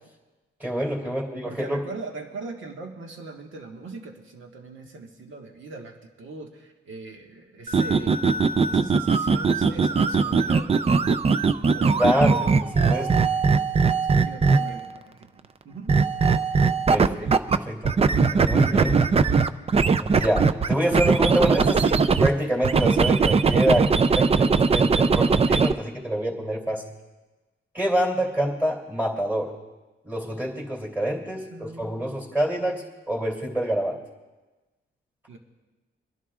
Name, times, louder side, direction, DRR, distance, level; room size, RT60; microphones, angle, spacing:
voice 1, 0.6-1.8 12.0-13.1 16.9-17.1 17.7-18.0 18.3-19.0 20.0-26.8 27.7-29.5 30.0-34.0, right 1 dB, 10° right, 0 dB, 2.8 m, -26 dB
voice 2, 1.4-11.2 11.7-13.0 14.0-16.0 17.0-17.3 31.2-32.2 32.6-32.9 35.3-35.4, right 3 dB, 75° right, 2 dB, 1.6 m, -41 dB
sound 1, 7.7-14.9 15.9-17.6 17.8-22.3 22.6-25.7, right 5 dB, 30° right, 0.4 m, -20 dB
27.0 x 11.0 x 2.4 m, 1.2 s
cardioid pair, 95°, 21 cm